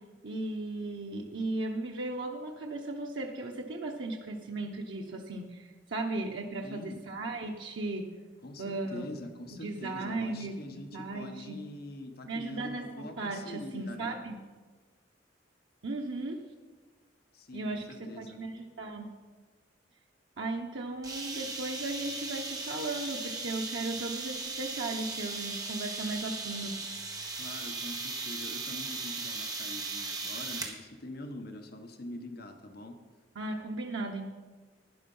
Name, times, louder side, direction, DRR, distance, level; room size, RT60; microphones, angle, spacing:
voice 1, 0.2-8.1 8.6-9.1 9.6-10.6 10.9-11.6 12.2-12.9 13.2-14.4 15.8-16.4 17.5-17.8 18.1-19.1 20.4-26.7 33.3-34.3, right 2 dB, 90° right, 1 dB, 1.0 m, -36 dB
voice 2, 6.6-7.0 8.4-14.2 17.3-18.4 27.3-33.0, left 1 dB, 55° left, 6 dB, 1.1 m, -44 dB
sound 1, 21.0-30.8, right 3 dB, 20° right, 1.5 m, -37 dB
12.0 x 10.0 x 5.5 m, 1.4 s
head